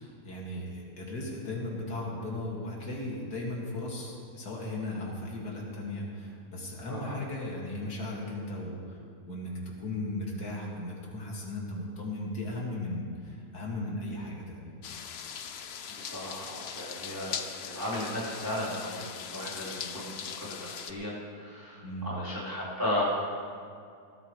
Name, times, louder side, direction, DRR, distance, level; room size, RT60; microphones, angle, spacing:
voice 1, 0.0-9.0 9.2-14.8 21.8-22.1, left 1 dB, 75° left, -3 dB, 2.9 m, -36 dB
sound 1, 14.8-20.9, left 7 dB, 55° left, 0.7 m, -40 dB
voice 2, 16.0-23.0, left 1 dB, 10° right, -10 dB, 3.7 m, -35 dB
19.0 x 13.5 x 3.3 m, 2.3 s
omnidirectional pair, 1.7 m